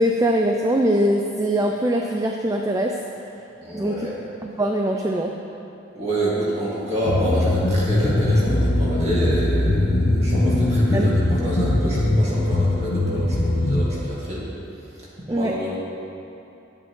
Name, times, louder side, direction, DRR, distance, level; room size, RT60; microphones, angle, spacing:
voice 1, 0.0-2.9 3.7-4.1 4.4-5.3 10.9-11.1 15.3-15.5, right 1 dB, 15° right, 1 dB, 0.3 m, -22 dB
voice 2, 3.6-4.2 5.9-14.5 14.9-15.7, right 1 dB, 35° right, -7 dB, 2.1 m, -27 dB
sound 1, 7.1-13.9, left 1 dB, 65° left, 0.8 m, -21 dB
11.0 x 8.6 x 3.1 m, 2.8 s
head